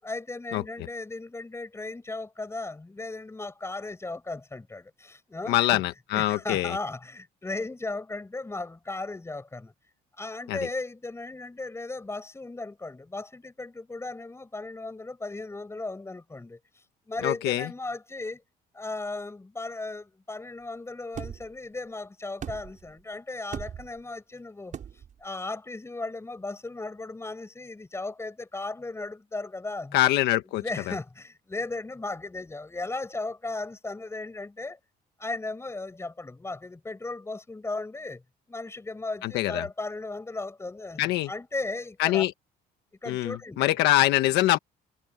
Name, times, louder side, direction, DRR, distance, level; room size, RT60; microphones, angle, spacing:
voice 1, 0.0-5.8 6.1-9.7 10.1-16.6 17.1-18.4 18.7-24.8 25.2-30.0 30.6-34.8 35.2-38.2 38.5-42.2 43.0-43.7, left 2 dB, 15° left, 6.9 m, -36 dB
voice 2, 5.5-6.8 10.5-10.6 17.2-17.7 29.9-30.9 39.2-39.7 41.0-41.3 42.0-42.3 43.1-44.6, left 16 dB, 85° left, 1.4 m, -24 dB
sound 1, 21.2-21.5 22.4-22.9 23.5-24.0 24.7-25.1, right 8 dB, 50° right, 5.4 m, -38 dB
cardioid pair, 110°, 17 cm